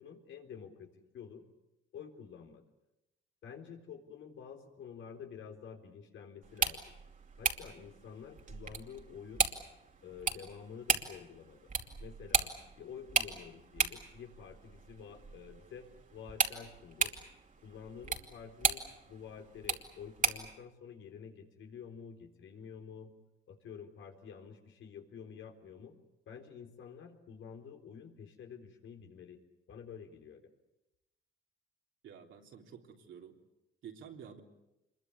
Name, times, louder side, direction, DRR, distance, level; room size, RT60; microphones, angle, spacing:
voice 1, 0.0-1.4 1.9-2.6 3.4-6.9 7.4-9.5 10.0-11.7 12.0-17.1 17.6-23.1 23.5-26.0 26.3-29.4 29.7-30.4, left 7 dB, 75° left, 3 dB, 3.9 m, -49 dB
sound 1, 6.4-20.6, right 5 dB, 40° right, 2.7 m, -36 dB
voice 2, 32.0-33.3 33.8-34.4, right 7 dB, 75° right, 2 dB, 3.6 m, -50 dB
26.0 x 22.5 x 8.4 m, 0.93 s
cardioid pair, 90°, 20 cm